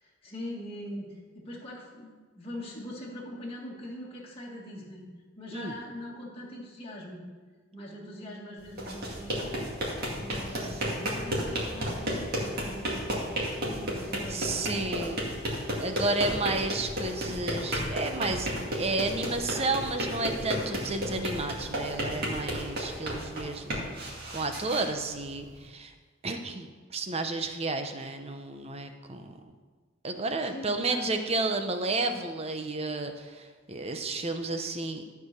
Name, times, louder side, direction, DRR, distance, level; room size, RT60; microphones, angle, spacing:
voice 1, 0.0-5.1 5.4-7.2 7.7-9.6 10.2-13.2 13.5-14.5 30.5-31.2, left 1 dB, 25° left, -5 dB, 1.7 m, -42 dB
sound 1, 8.7-25.6, equal, 50° right, 2.3 m, -33 dB
voice 2, 14.3-15.2 15.8-23.9 24.3-25.9 26.2-29.3 30.0-35.0, right 3 dB, 30° right, 6 dB, 0.8 m, -32 dB
13.0 x 4.8 x 6.6 m, 1.4 s
head